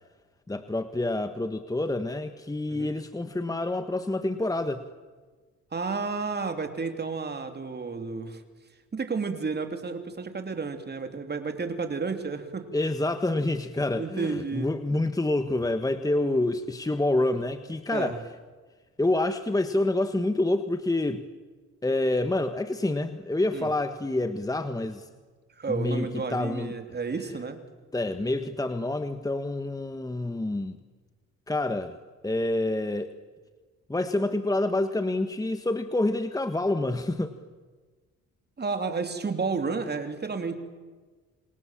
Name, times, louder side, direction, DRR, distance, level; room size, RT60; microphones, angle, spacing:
voice 1, 0.5-4.8 12.7-18.2 19.0-21.2 21.8-25.1 25.7-26.7 27.9-30.8 31.5-32.0 32.2-33.1 33.9-37.3, left 2 dB, 10° left, 9 dB, 1.4 m, -27 dB
voice 2, 5.7-8.4 8.9-12.7 14.0-14.7 17.9-18.2 23.5-23.7 25.6-27.6 38.6-40.6, right 4 dB, 35° right, 7 dB, 3.1 m, -31 dB
28.0 x 27.5 x 7.5 m, 1.4 s
cardioid pair, 90°, 30 cm